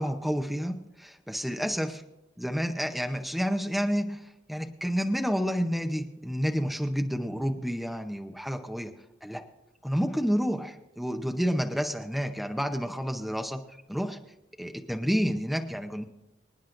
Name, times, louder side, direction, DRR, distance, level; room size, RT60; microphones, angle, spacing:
voice 1, 0.0-2.0 2.4-4.2 4.5-8.9 9.2-9.4 9.8-13.6 13.9-14.2 14.6-16.0, equal, ahead, 5 dB, 0.7 m, -29 dB
26.0 x 9.4 x 2.6 m, 0.90 s
head